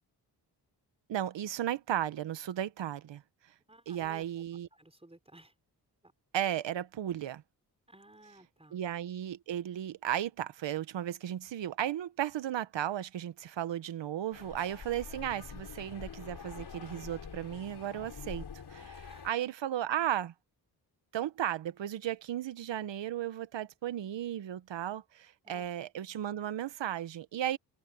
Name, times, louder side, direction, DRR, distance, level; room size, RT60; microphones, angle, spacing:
voice 1, 1.1-3.2 3.9-4.7 6.3-7.4 8.7-18.4 18.7-20.3 21.1-27.6, right 11 dB, 80° right, 1.1 m, -35 dB
voice 2, 3.7-5.5 6.0-6.1 7.9-8.8 19.0-19.3 25.4-25.7, right 1 dB, 15° right, 5.0 m, -56 dB
sound 1, 14.3-19.3, left 6 dB, 60° left, 4.4 m, -46 dB
cardioid pair, 60°, 43 cm